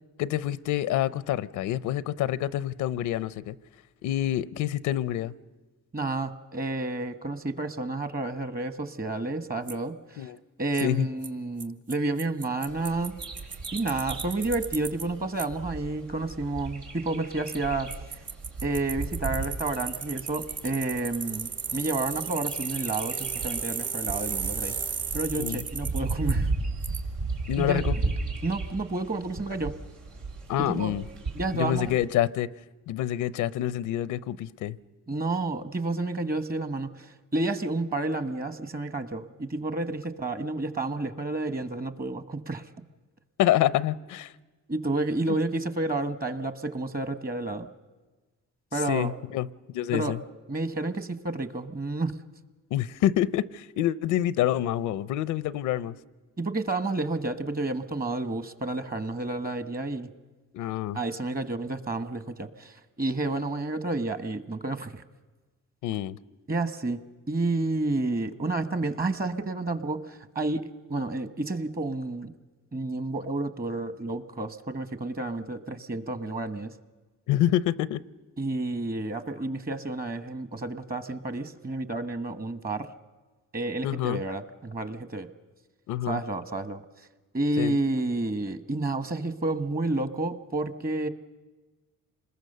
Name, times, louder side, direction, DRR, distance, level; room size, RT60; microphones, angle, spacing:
voice 1, 0.2-3.5 4.0-5.3 10.2-10.4 10.8-11.1 25.4-25.6 27.5-28.0 30.5-31.0 31.5-32.5 32.9-34.8 43.4-44.3 48.9-50.2 52.7-56.0 60.5-61.0 65.8-66.2 77.3-78.0 83.8-84.2 85.9-86.2 87.6-87.8, left 12 dB, 90° left, 18 dB, 0.7 m, -27 dB
voice 2, 5.9-10.3 10.6-13.2 13.7-17.9 18.6-24.7 25.1-26.5 27.6-27.8 28.4-29.7 30.6-30.9 31.3-31.9 35.1-42.6 44.7-47.7 48.7-49.1 49.9-50.2 50.5-52.1 56.4-60.1 60.9-65.0 66.5-67.0 67.3-70.6 70.9-72.3 72.7-76.7 78.4-82.9 83.5-85.3 86.1-86.8 87.3-91.1, right 2 dB, 30° right, 12 dB, 1.3 m, -30 dB
Bicycle, 9.7-9.8 10.8-10.9 11.2-11.3 11.6-11.7 11.9-12.0 12.2-15.0 15.4-15.5 17.5-17.6 17.9-26.3 26.8-27.0, right 6 dB, 50° right, 1.6 m, -34 dB
Bird vocalization bird call bird song, 12.7-32.1, right 3 dB, 90° right, 3.6 m, -36 dB
26.5 x 21.0 x 6.7 m, 1.3 s
cardioid pair, 90°, 30 cm